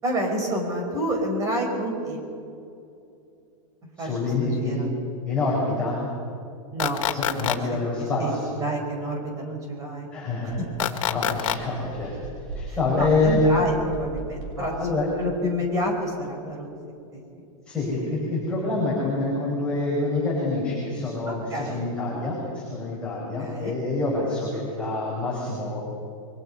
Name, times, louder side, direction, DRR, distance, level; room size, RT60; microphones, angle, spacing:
voice 1, 0.0-2.2 4.0-4.9 6.7-7.5 8.2-8.3 8.6-10.1 10.4-10.5 12.7-16.7 17.1-17.2 21.3-21.9 23.4-23.8, equal, 20° right, 1 dB, 5.0 m, -29 dB
voice 2, 4.0-4.8 5.2-6.0 7.4-8.5 10.1-10.6 11.1-13.4 14.6-15.1 17.7-25.8, left 3 dB, 5° left, -7 dB, 5.0 m, -26 dB
sound 1, 6.8-7.6 10.8-11.6, left 12 dB, 65° left, 1.9 m, -25 dB
sound 2, 10.5-10.6 10.9-15.1, right 1 dB, 35° right, 6.0 m, -37 dB
29.5 x 23.5 x 5.6 m, 2.6 s
supercardioid pair, 170°, 18 cm